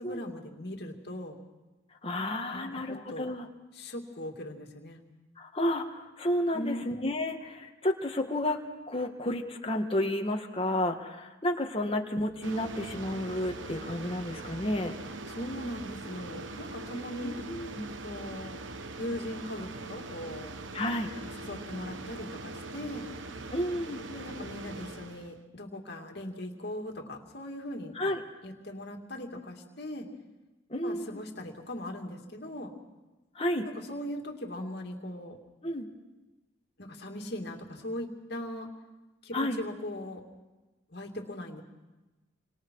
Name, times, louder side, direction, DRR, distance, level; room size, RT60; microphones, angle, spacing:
voice 1, 0.0-1.4 2.5-3.3 3.7-5.0 6.5-6.8 15.3-17.3 18.0-18.6 19.0-20.5 21.1-23.0 24.1-27.9 28.4-30.1 30.8-32.7 33.6-35.4 36.8-38.7 39.2-40.2 40.9-41.6, left 1 dB, 55° left, 2 dB, 2.7 m, -39 dB
voice 2, 2.0-3.5 5.4-8.6 8.9-14.9 17.2-17.9 20.7-21.1 23.5-24.0 27.9-28.2 30.7-31.2 33.4-33.7 35.6-35.9 39.3-39.6, left 1 dB, 30° left, 3 dB, 1.8 m, -31 dB
sound 1, 12.4-25.4, right 2 dB, 80° right, 1.1 m, -42 dB
29.5 x 25.5 x 4.8 m, 1.1 s
head